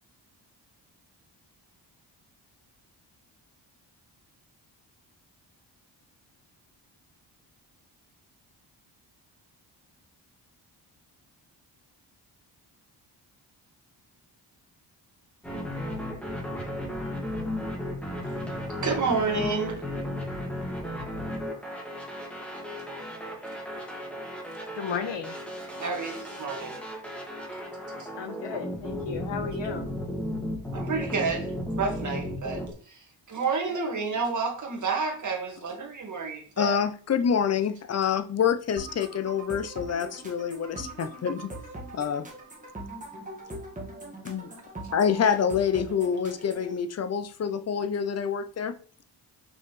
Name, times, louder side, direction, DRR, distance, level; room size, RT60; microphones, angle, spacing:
sound 1, 15.4-32.7, equal, 5° left, 1.9 m, -35 dB
voice 1, 18.8-19.8 25.8-26.8 28.0-28.1 30.7-36.8, right 4 dB, 45° right, 1 dB, 1.7 m, -30 dB
voice 2, 24.7-25.4 28.2-29.9 33.7-33.8, left 6 dB, 90° left, 6 dB, 1.2 m, -34 dB
voice 3, 36.6-41.5 41.9-42.3 44.2-44.5 44.9-48.7, left 7 dB, 40° left, 11 dB, 0.5 m, -27 dB
sound 2, 38.8-46.7, right 1 dB, 20° right, 1.7 m, -41 dB
5.8 x 5.5 x 3.1 m, 0.43 s
wide cardioid pair, 150°, 42 cm